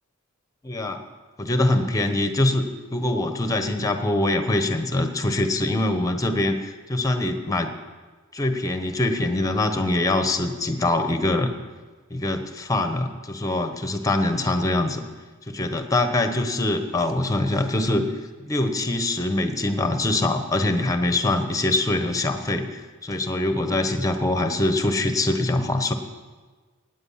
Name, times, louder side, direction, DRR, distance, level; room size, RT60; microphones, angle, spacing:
voice 1, 0.6-1.0 1.4-2.6 2.9-7.7 8.3-11.5 12.1-15.1 15.5-18.1 18.4-25.9, left 2 dB, 15° left, 7 dB, 1.0 m, -23 dB
18.0 x 9.1 x 5.7 m, 1.4 s
head